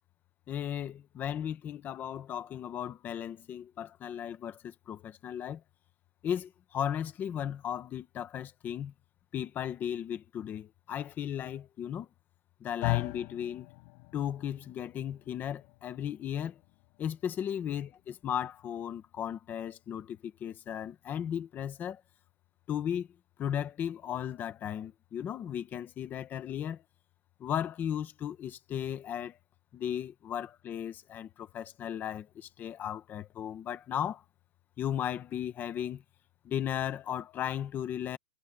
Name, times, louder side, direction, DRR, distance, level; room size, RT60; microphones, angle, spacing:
voice 1, 0.5-5.6 6.2-8.9 9.3-12.1 12.6-13.7 14.1-16.6 17.0-22.0 22.7-23.1 23.4-26.8 27.4-29.4 29.7-34.2 34.8-36.0 36.4-38.2, left 9 dB, 5° left, 0.5 m, -36 dB
sound 1, 12.8-21.1, left 33 dB, 30° left, 5.6 m, -41 dB
hypercardioid pair, 145°, 45 cm